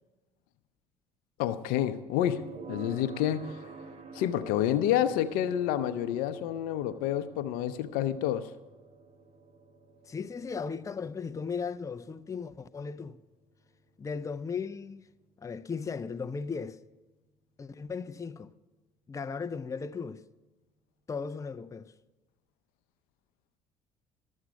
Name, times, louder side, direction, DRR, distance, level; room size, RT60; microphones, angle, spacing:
voice 1, 1.4-3.7 4.1-8.5, left 11 dB, 75° left, 0.6 m, -29 dB
sound 1, 2.2-17.2, right 4 dB, 45° right, 1.1 m, -51 dB
voice 2, 10.0-13.2 14.0-15.1 15.4-16.8 17.6-18.5 19.1-20.2 21.1-21.9, left 5 dB, 20° left, 0.5 m, -36 dB
12.5 x 7.3 x 6.2 m
hypercardioid pair, 65°, 15 cm